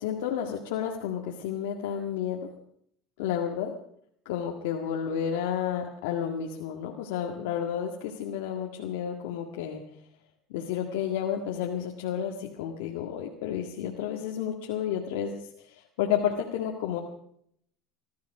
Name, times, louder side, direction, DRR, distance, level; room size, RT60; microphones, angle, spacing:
voice 1, 0.0-2.5 3.2-3.7 4.3-9.8 10.5-17.0, left 9 dB, 90° left, 0 dB, 1.9 m, -31 dB
21.5 x 13.5 x 5.0 m, 0.68 s
supercardioid pair, 125°, 0 cm